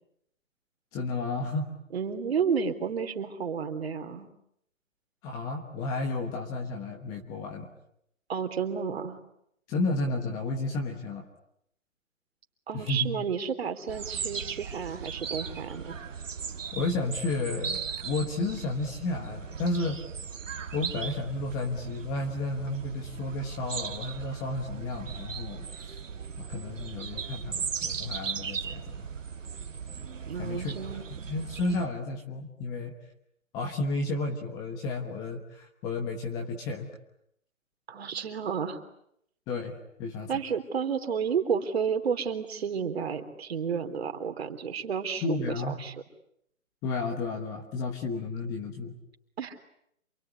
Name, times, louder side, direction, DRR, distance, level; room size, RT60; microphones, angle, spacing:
voice 1, 0.9-1.7 5.2-7.7 9.7-11.3 12.7-13.1 16.7-20.0 20.7-26.0 26.4-29.1 30.3-30.8 31.3-32.9 33.5-36.9 39.5-40.3 45.2-45.8 46.8-48.9, left 2 dB, 10° left, 3 dB, 1.2 m, -32 dB
voice 2, 1.9-4.3 8.3-9.2 12.7-16.0 30.3-31.1 37.9-38.8 40.3-46.0 49.4-49.6, right 6 dB, 50° right, 8 dB, 3.6 m, -31 dB
sound 1, 13.9-31.9, right 6 dB, 65° right, 2.2 m, -37 dB
28.0 x 22.0 x 9.7 m, 0.73 s
hypercardioid pair, 160°, 41 cm